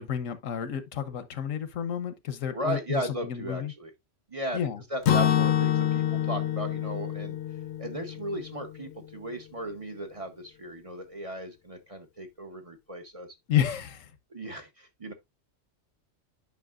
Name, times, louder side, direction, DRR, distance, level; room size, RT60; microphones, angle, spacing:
voice 1, 0.0-3.7 4.5-4.8 13.5-14.1, left 9 dB, 90° left, 1.2 m, -30 dB
voice 2, 2.5-3.9 4.3-7.4 7.8-13.3 14.3-15.1, right 1 dB, 30° right, 0.9 m, -36 dB
Acoustic guitar / Strum, 5.0-9.0, left 10 dB, 65° left, 0.8 m, -27 dB
9.4 x 5.5 x 2.4 m
omnidirectional pair, 1.3 m